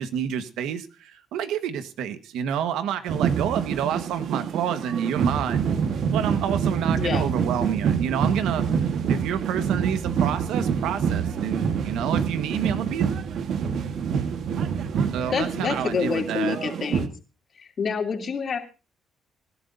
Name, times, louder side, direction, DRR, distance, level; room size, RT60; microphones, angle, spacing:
voice 1, 0.0-5.7 6.1-13.1 15.1-16.6, right 9 dB, 90° right, 10 dB, 1.3 m, -29 dB
sound 1, 3.1-17.1, right 7 dB, 70° right, 1.3 m, -26 dB
voice 2, 15.3-17.1 17.6-18.6, left 6 dB, 50° left, 3 dB, 2.8 m, -27 dB
25.0 x 11.5 x 2.6 m, 0.31 s
cardioid pair, 90°, 0 cm